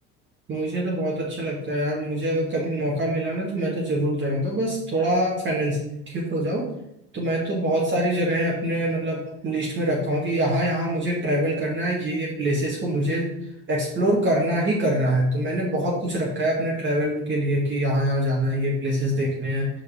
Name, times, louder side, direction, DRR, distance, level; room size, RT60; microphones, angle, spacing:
voice 1, 0.5-5.8 6.1-6.7 7.1-13.3 13.7-19.7, right 1 dB, 35° right, -3 dB, 1.9 m, -24 dB
5.3 x 4.6 x 5.0 m, 0.79 s
supercardioid pair, 95°, 32 cm